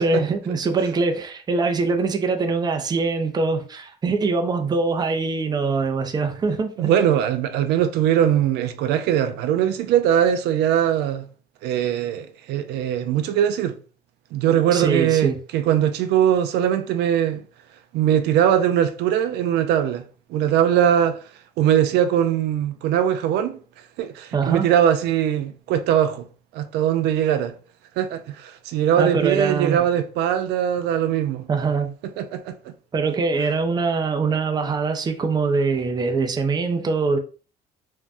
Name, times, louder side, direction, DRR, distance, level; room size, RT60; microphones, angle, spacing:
voice 1, 0.0-6.9 14.7-15.4 24.3-24.7 29.0-29.8 31.5-31.9 32.9-37.2, right 4 dB, 25° right, 0.5 m, -23 dB
voice 2, 6.8-11.3 11.6-13.8 14.3-17.4 17.9-21.2 21.6-23.6 24.0-26.3 26.5-27.5 28.0-31.5 32.2-32.7, right 10 dB, 80° right, 0.4 m, -21 dB
2.5 x 2.1 x 3.4 m
cardioid pair, 110°, 17 cm